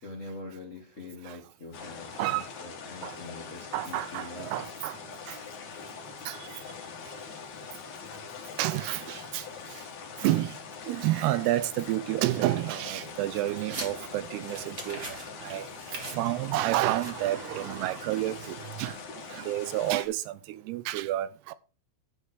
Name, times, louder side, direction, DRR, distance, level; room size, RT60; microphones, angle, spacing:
voice 1, 0.0-4.7, left 3 dB, 75° left, 0.7 m, -44 dB
sound 1, 1.7-20.1, left 6 dB, 55° left, 2.6 m, -43 dB
voice 2, 3.7-5.0 5.3-5.4 6.3-6.6 8.6-9.8 10.2-10.6 10.9-15.7 15.9-21.5, right 15 dB, 80° right, 2.5 m, -30 dB
sound 2, 13.0-19.2, right 2 dB, 30° right, 1.8 m, -45 dB
10.5 x 5.0 x 6.3 m
omnidirectional pair, 4.8 m